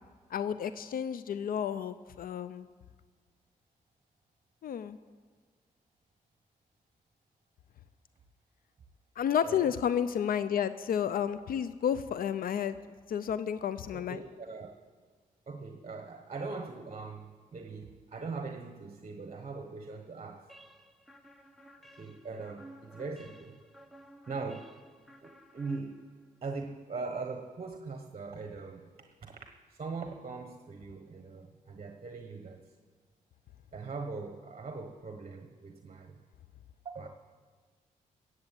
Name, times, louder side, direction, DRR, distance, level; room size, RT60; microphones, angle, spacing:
voice 1, 0.3-2.7 4.6-5.0 9.2-12.8 13.1-14.2, left 8 dB, 70° left, 14 dB, 0.5 m, -31 dB
voice 2, 9.4-9.8 13.9-14.8 15.5-20.5 21.9-23.5 24.3-24.7 25.2-26.0 26.4-28.9 29.2-29.4 29.7-32.6 33.7-36.2 36.8-37.1, right 4 dB, 40° right, 5 dB, 1.1 m, -41 dB
sound 1, 20.5-26.4, right 1 dB, ahead, 1.1 m, -54 dB
15.0 x 8.1 x 8.3 m, 1.5 s
cardioid pair, 75°, 15 cm